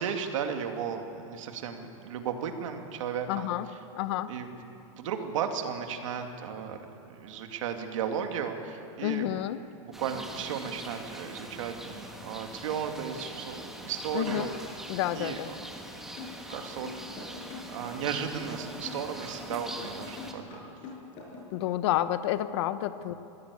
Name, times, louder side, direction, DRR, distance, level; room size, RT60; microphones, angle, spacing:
voice 1, 0.0-3.5 4.3-4.6 4.9-6.8 7.1-9.3 9.8-14.5 15.1-15.6 16.5-16.9 17.7-20.6, right 7 dB, 75° right, 5 dB, 2.5 m, -35 dB
voice 2, 3.3-3.7 3.9-4.3 9.0-9.6 14.1-14.5 14.9-15.5 21.5-23.1, left 13 dB, 55° left, 13 dB, 0.9 m, -29 dB
sound 1, 9.9-20.3, right 1 dB, ahead, 1.6 m, -43 dB
sound 2, 16.2-21.5, left 4 dB, 35° left, 6.2 m, -43 dB
23.5 x 16.5 x 8.4 m, 2.8 s
supercardioid pair, 160°, 17 cm